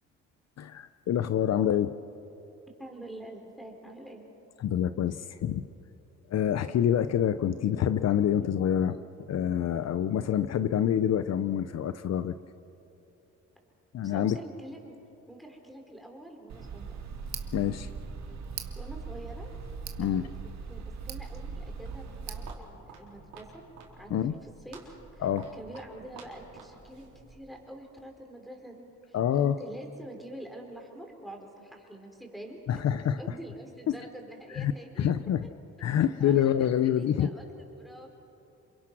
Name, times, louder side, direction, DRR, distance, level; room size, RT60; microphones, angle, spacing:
voice 1, 0.6-1.9 4.6-5.7 6.3-9.0 9.3-12.3 13.9-14.4 17.5-17.9 20.0-20.3 24.1-24.3 25.2-25.5 29.1-29.6 32.7-33.2 33.9-34.0 34.5-34.7 35.0-35.5 35.8-37.3, left 10 dB, 60° left, 12 dB, 0.7 m, -26 dB
voice 2, 2.8-4.2 14.0-14.9 15.3-17.0 18.7-19.5 20.0-20.3 20.7-23.5 24.0-25.3 25.5-32.9 33.2-35.0 35.8-38.1, right 1 dB, ahead, 2 dB, 4.7 m, -46 dB
Tick, 16.5-22.5, right 5 dB, 65° right, 2.1 m, -39 dB
Walk footsteps, 21.6-27.6, right 4 dB, 80° right, 4.2 m, -51 dB
28.0 x 23.0 x 6.2 m, 2.9 s
cardioid pair, 90°, 30 cm